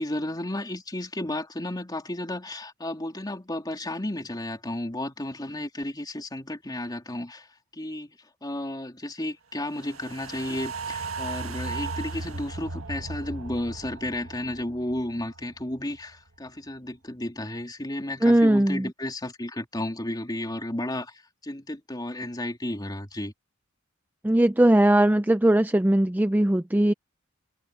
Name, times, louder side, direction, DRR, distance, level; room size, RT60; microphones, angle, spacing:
voice 1, 0.0-7.5 7.7-23.3, left 1 dB, 20° left, 3.0 m, -33 dB
sound 1, 9.7-16.1 16.5-16.6, right 3 dB, 90° right, 1.7 m, -36 dB
voice 2, 18.2-18.9 24.2-26.9, right 1 dB, 10° right, 0.4 m, -19 dB
head